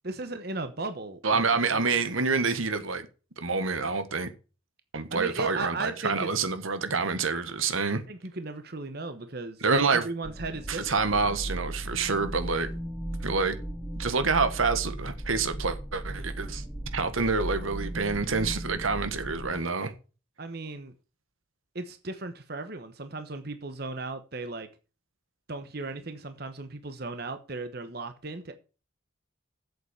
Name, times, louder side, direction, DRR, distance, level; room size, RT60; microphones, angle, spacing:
voice 1, 0.0-2.0 5.1-6.3 8.1-9.6 9.9-11.4 20.4-20.9 21.7-24.7 25.5-28.5, right 3 dB, 50° right, 1.1 m, -36 dB
voice 2, 1.2-3.1 3.4-4.3 4.9-8.0 9.6-10.0 10.7-12.7 13.2-13.6 13.9-16.6 16.9-19.9, right 4 dB, 85° right, 1.5 m, -27 dB
sound 1, 10.2-19.6, right 1 dB, 5° left, 1.1 m, -36 dB
8.2 x 7.8 x 7.0 m
head